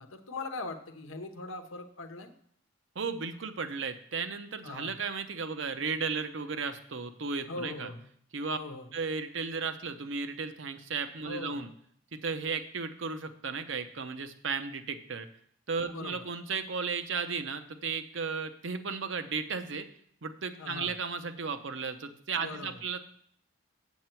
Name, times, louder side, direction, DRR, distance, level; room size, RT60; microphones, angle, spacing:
voice 1, 0.0-2.3 4.6-5.0 7.5-8.1 8.5-8.9 11.2-11.7 15.9-16.2 20.6-20.9 22.4-22.7, left 2 dB, 85° left, 6 dB, 0.9 m, -40 dB
voice 2, 3.0-7.9 8.3-8.6 8.9-11.7 12.2-15.3 15.7-19.9 20.2-23.0, right 5 dB, 70° right, 9 dB, 0.7 m, -35 dB
7.7 x 7.3 x 4.5 m, 0.63 s
head